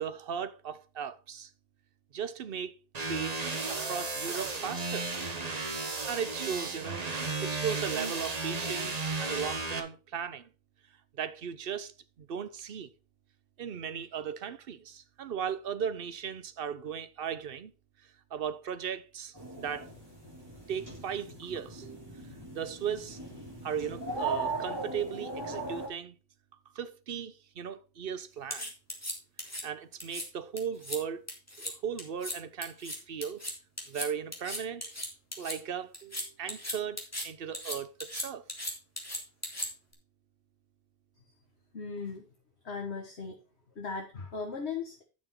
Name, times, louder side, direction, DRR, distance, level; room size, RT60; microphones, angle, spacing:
voice 1, 0.0-1.5 2.1-3.4 3.7-5.1 6.1-7.1 7.4-10.5 11.1-12.9 13.6-17.7 18.3-19.9 20.7-23.2 23.6-26.2 26.7-28.7 29.6-31.3 31.6-33.4 33.9-34.9 35.4-37.0 37.2-38.4, right 8 dB, 60° right, 1.0 m, -37 dB
sound 1, 2.9-9.8, right 3 dB, 40° right, 1.2 m, -34 dB
sound 2, 19.3-25.9, right 3 dB, 20° right, 3.1 m, -38 dB
sound 3, 28.5-29.6 30.0-30.2 30.6-31.0 31.3-31.7 32.0-32.4 32.6-35.6 35.9-37.3 37.5-39.9, left 1 dB, 15° left, 2.3 m, -37 dB
voice 2, 41.7-42.2 42.6-43.4 43.8-45.0, left 4 dB, 75° left, 1.9 m, -37 dB
9.9 x 6.1 x 4.4 m
omnidirectional pair, 1.1 m